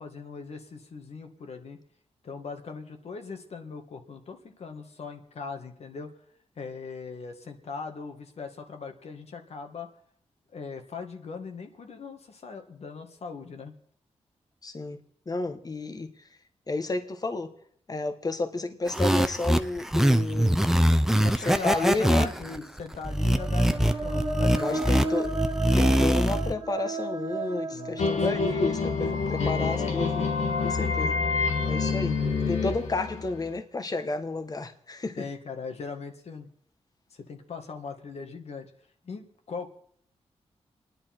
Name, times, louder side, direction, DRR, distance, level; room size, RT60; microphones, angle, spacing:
voice 1, 0.0-1.8 2.2-6.1 6.6-9.9 10.5-13.7 21.2-25.1 27.7-28.7 35.2-36.5 37.1-38.7 39.0-39.8, left 4 dB, 70° left, 2.1 m, -39 dB
voice 2, 14.6-15.0 15.3-16.1 16.7-17.5 17.9-20.5 21.4-22.3 24.5-25.3 25.7-30.3 30.6-31.2 31.7-32.2 32.5-35.3, left 3 dB, 35° left, 1.4 m, -31 dB
sound 1, 18.9-26.5, equal, 5° right, 0.9 m, -23 dB
sound 2, 23.2-28.9, right 2 dB, 35° right, 1.7 m, -32 dB
sound 3, 28.0-33.6, left 4 dB, 90° left, 1.8 m, -27 dB
29.5 x 10.5 x 4.5 m
cardioid pair, 85°, 11 cm